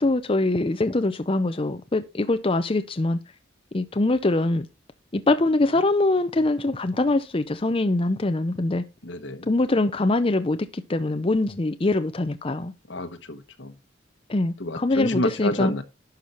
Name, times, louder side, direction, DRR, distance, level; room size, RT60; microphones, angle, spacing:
voice 1, 0.0-3.2 3.7-4.7 5.1-8.8 9.5-12.7 14.3-15.7, left 2 dB, 30° left, 0.6 m, -23 dB
voice 2, 9.0-9.5 12.9-13.7 14.6-15.8, left 2 dB, 75° left, 1.2 m, -29 dB
11.5 x 5.5 x 4.3 m
head